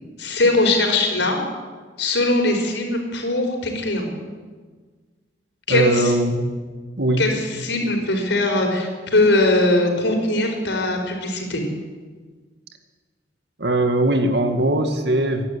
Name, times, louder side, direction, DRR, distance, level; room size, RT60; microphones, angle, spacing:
voice 1, 0.2-1.4 2.0-4.0 5.7-6.1 7.2-11.6, left 2 dB, 80° left, 3 dB, 4.9 m, -20 dB
voice 2, 5.7-6.5 7.0-7.3 13.6-15.4, right 1 dB, 65° right, 6 dB, 2.3 m, -20 dB
25.5 x 11.5 x 9.9 m, 1.5 s
head